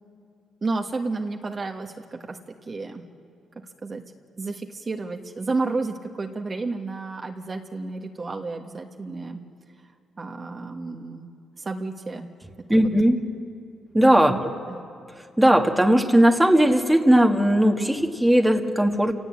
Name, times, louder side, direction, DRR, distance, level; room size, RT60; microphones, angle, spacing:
voice 1, 0.6-3.0 3.8-4.0 4.4-9.4 10.2-12.3 12.7-12.9 14.3-14.4 14.7-14.8, right 3 dB, 35° right, 3 dB, 1.5 m, -31 dB
voice 2, 12.7-13.2 13.9-14.5 15.4-19.1, right 1 dB, 5° right, 4 dB, 1.7 m, -18 dB
29.0 x 18.0 x 8.5 m, 2.3 s
cardioid pair, 90°, 0 cm